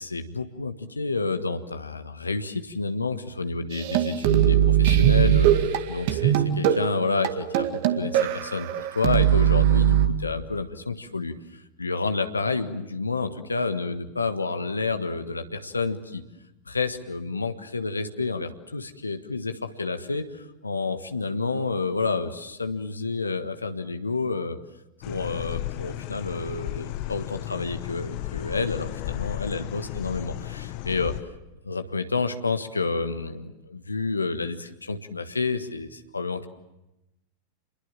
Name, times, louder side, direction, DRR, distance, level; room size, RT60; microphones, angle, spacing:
voice 1, 0.0-16.2 16.7-24.6 25.0-31.2 31.6-36.5, left 3 dB, 80° left, 8 dB, 1.5 m, -29 dB
sound 1, 3.7-10.1, right 10 dB, 50° right, 2.0 m, -21 dB
sound 2, 25.0-31.2, left 16 dB, 45° left, 1.1 m, -34 dB
28.5 x 22.0 x 7.6 m, 0.92 s
figure-of-eight pair, 90°, 0 cm